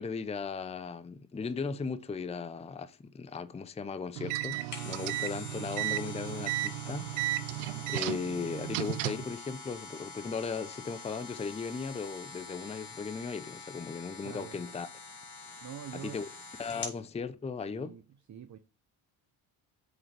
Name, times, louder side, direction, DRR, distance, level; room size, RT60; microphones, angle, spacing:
voice 1, 0.0-7.4 7.9-14.9 16.0-16.3 16.6-18.0, left 5 dB, 15° left, 0.5 m, -37 dB
sound 1, 4.2-9.3, right 15 dB, 85° right, 0.6 m, -34 dB
sound 2, 4.4-17.0 17.5-17.6, left 4 dB, 35° left, 2.6 m, -46 dB
voice 2, 14.2-14.6 15.6-16.2 16.7-16.8 17.7-18.0 18.3-18.6, right 9 dB, 35° right, 0.7 m, -45 dB
7.9 x 3.9 x 3.3 m
supercardioid pair, 70°, 49 cm